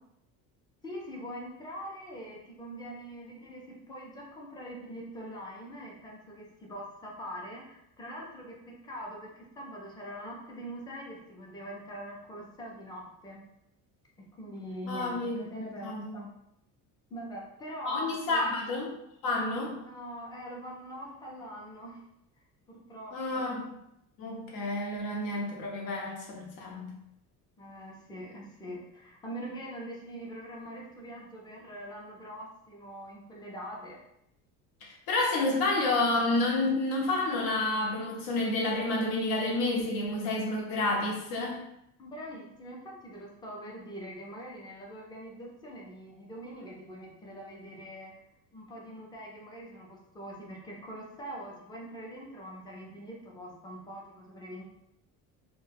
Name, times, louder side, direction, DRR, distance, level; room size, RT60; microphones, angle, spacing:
voice 1, 0.8-13.4 14.2-16.3 17.1-18.5 19.8-22.0 22.7-23.5 27.6-34.0 42.0-48.2 48.5-54.6, equal, 15° left, -2 dB, 0.4 m, -43 dB
voice 2, 14.9-15.4 15.8-16.2 17.8-19.0 19.2-19.8 23.1-23.6 24.2-27.0 34.8-41.6, left 2 dB, 80° left, -1 dB, 0.8 m, -29 dB
2.2 x 2.1 x 3.3 m, 0.80 s
cardioid pair, 155°, 35 cm